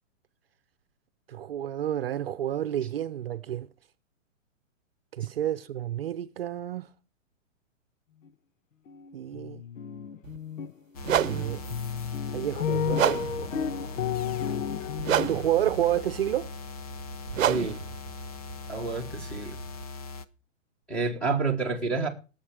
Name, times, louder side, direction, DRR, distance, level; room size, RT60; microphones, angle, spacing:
voice 1, 1.3-3.7 5.1-6.9 9.1-9.6 11.2-11.6 12.3-13.5 15.3-16.5, right 11 dB, 50° right, 0.8 m, -30 dB
sound 1, 8.9-9.1 9.3-10.7 11.1-15.6, left 8 dB, 80° left, 1.0 m, -32 dB
sound 2, 10.2-10.4 11.0-19.8, right 11 dB, 90° right, 0.7 m, -31 dB
sound 3, 10.9-20.2, left 4 dB, 30° left, 0.7 m, -40 dB
voice 2, 17.4-17.8 18.7-19.6 20.9-22.1, right 4 dB, 5° left, 1.5 m, -29 dB
18.5 x 7.4 x 4.9 m
hypercardioid pair, 170°, 38 cm